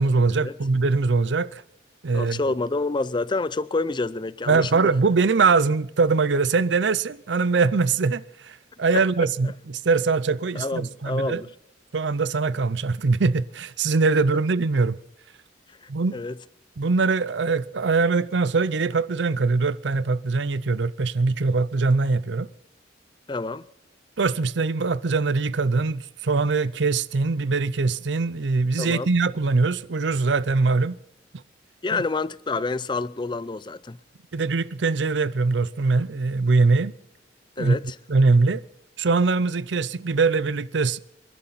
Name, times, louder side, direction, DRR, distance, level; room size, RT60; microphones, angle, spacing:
voice 1, 0.0-1.6 2.0-2.5 4.5-11.4 11.9-15.0 15.9-16.2 16.8-22.5 24.2-31.0 31.9-32.0 34.3-36.9 37.6-37.8 38.1-38.6 39.0-41.0, right 4 dB, 65° right, 0.6 m, -22 dB
voice 2, 2.1-4.8 8.9-9.0 10.5-11.5 15.8-16.3 23.3-23.7 28.8-29.1 31.8-34.0 37.6-38.0, left 3 dB, 25° left, 0.5 m, -28 dB
27.5 x 11.5 x 4.1 m
head